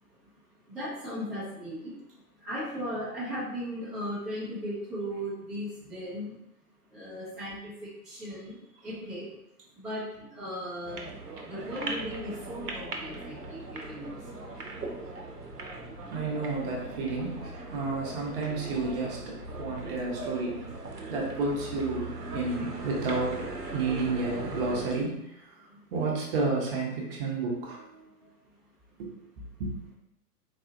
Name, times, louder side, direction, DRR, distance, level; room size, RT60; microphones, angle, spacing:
voice 1, 0.7-1.9 2.4-6.3 6.9-8.5 8.8-9.3 9.8-11.1 11.4-14.2, equal, ahead, -13 dB, 0.5 m, -37 dB
sound 1, 10.8-24.9, right 2 dB, 80° right, 0.8 m, -39 dB
voice 2, 16.1-20.6 21.1-25.4 25.9-28.0 29.0-29.1 29.6-29.8, right 3 dB, 35° right, -2 dB, 0.9 m, -31 dB
4.1 x 2.4 x 2.5 m, 0.82 s
figure-of-eight pair, 110°, 47 cm